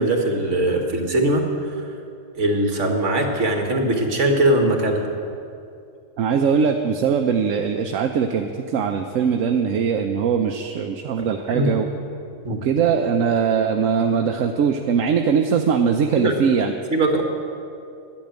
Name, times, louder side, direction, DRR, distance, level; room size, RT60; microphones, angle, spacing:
voice 1, 0.0-1.5 2.4-5.1 11.2-11.7 12.4-12.6 16.2-16.3 16.9-17.2, right 1 dB, 65° right, 2 dB, 1.9 m, -21 dB
voice 2, 6.2-11.9 12.5-16.7, right 6 dB, 80° right, 4 dB, 1.1 m, -21 dB
11.5 x 8.7 x 8.8 m, 2.5 s
omnidirectional pair, 1.3 m